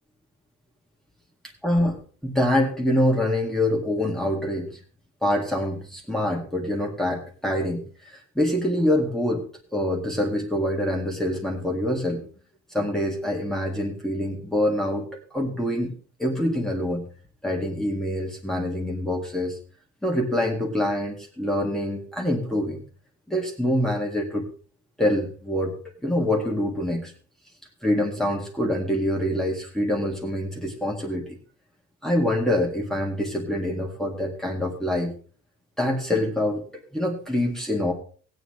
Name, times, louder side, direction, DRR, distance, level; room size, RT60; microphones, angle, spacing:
voice 1, 1.6-4.7 5.2-12.2 12.7-15.1 15.3-15.9 16.2-17.0 17.4-19.6 20.0-22.8 23.3-24.5 25.0-25.8 26.0-27.1 27.8-31.4 32.0-35.1 35.8-36.6 36.9-37.9, left 1 dB, ahead, -1 dB, 2.0 m, -25 dB
15.5 x 9.3 x 3.2 m, 0.41 s
cardioid pair, 90°, 30 cm